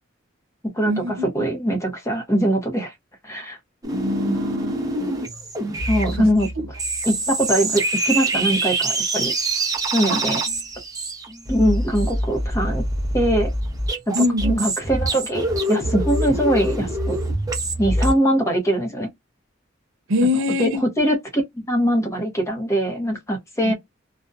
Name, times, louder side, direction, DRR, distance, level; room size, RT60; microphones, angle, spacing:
voice 1, 0.7-2.9 3.2-3.6 4.3-4.4 5.9-6.5 7.1-9.3 9.9-10.4 11.5-12.8 13.1-13.5 14.1-17.2 17.8-19.1 20.6-23.7, equal, 15° left, 0.7 m, -22 dB
sound 1, 3.8-18.1, right 1 dB, 20° right, 0.7 m, -25 dB
voice 2, 3.9-4.7 5.0-5.2 6.2-6.3 10.1-10.2 14.1-14.5 20.1-20.8 23.6-23.7, left 2 dB, 90° right, 0.6 m, -23 dB
2.5 x 2.1 x 2.4 m
head